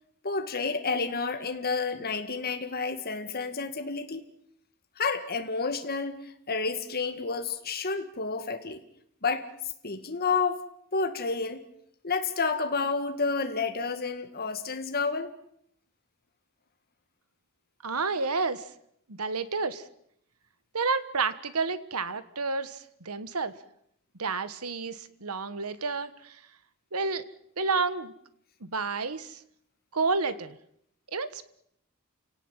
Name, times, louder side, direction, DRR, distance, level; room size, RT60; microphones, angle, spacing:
voice 1, 0.2-4.2 5.0-8.8 9.2-9.5 9.8-10.6 10.9-11.6 12.0-15.3, left 4 dB, 45° left, 6 dB, 1.9 m, -30 dB
voice 2, 17.8-18.7 19.1-19.8 20.7-23.5 24.2-26.4 26.9-27.2 27.6-28.1 28.6-29.4 29.9-30.6 31.1-31.4, right 4 dB, 85° right, 14 dB, 1.5 m, -30 dB
29.5 x 18.0 x 7.5 m, 0.72 s
head